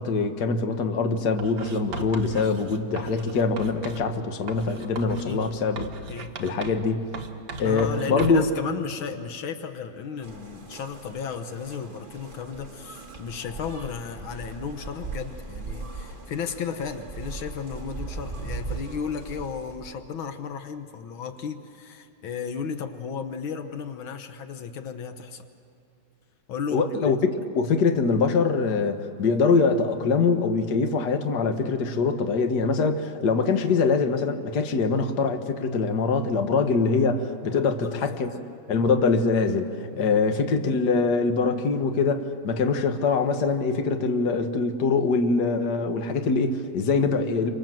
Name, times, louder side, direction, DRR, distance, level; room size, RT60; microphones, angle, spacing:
voice 1, 0.0-6.1 6.4-7.0 7.6-8.5 26.7-38.3 38.7-47.5, left 4 dB, 55° left, 6 dB, 1.9 m, -23 dB
Writing, 1.4-4.1 4.5-6.9 7.1-8.5, right 3 dB, 60° right, 1.9 m, -38 dB
voice 2, 7.6-25.5 26.5-27.1 37.5-38.4 39.9-40.1, left 6 dB, 85° left, 8 dB, 1.9 m, -34 dB
sound 1, 10.2-20.1, right 4 dB, 25° right, 2.0 m, -39 dB
29.5 x 25.0 x 7.7 m, 2.4 s
omnidirectional pair, 2.2 m